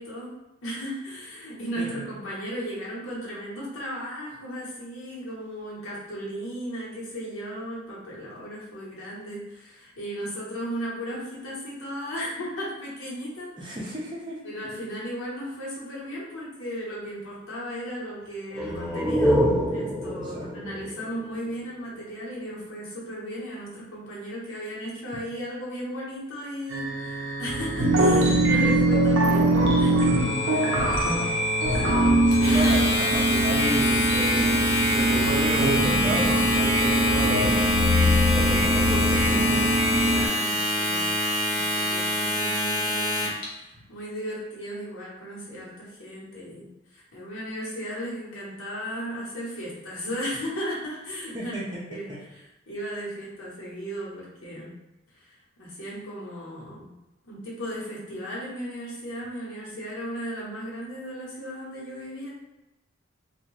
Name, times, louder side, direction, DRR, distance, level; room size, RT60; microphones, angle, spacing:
voice 1, 0.0-13.7 14.4-30.8 31.6-32.5 40.0-41.1 41.5-51.5 51.9-54.8 55.1-56.9 57.2-62.3, equal, 80° left, -6 dB, 1.0 m, -36 dB
voice 2, 13.6-14.5 20.0-20.5 28.6-28.7 30.6-31.0 32.3-37.7 38.3-39.8 51.3-52.2, right 1 dB, 25° right, -5 dB, 0.6 m, -33 dB
sound 1, 18.5-22.1, equal, 25° left, 1.2 m, -26 dB
sound 2, 26.7-40.3, right 1 dB, 65° right, 0.5 m, -22 dB
Domestic sounds home sounds, 32.3-43.4, left 1 dB, 40° left, 0.7 m, -26 dB
2.7 x 2.4 x 3.1 m, 0.96 s
head